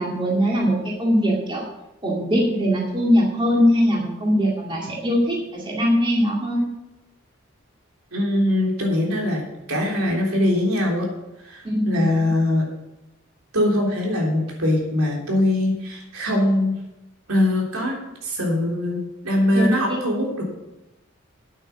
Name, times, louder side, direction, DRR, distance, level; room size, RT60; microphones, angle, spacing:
voice 1, 0.0-1.6 2.0-6.7 11.6-12.0 19.5-20.0, equal, 25° right, -3 dB, 2.2 m, -21 dB
voice 2, 8.1-9.4 9.7-11.1 11.4-12.7 13.5-16.8 17.3-18.0 18.2-20.4, left 1 dB, 85° right, -1 dB, 3.4 m, -22 dB
9.3 x 8.8 x 5.9 m, 0.94 s
head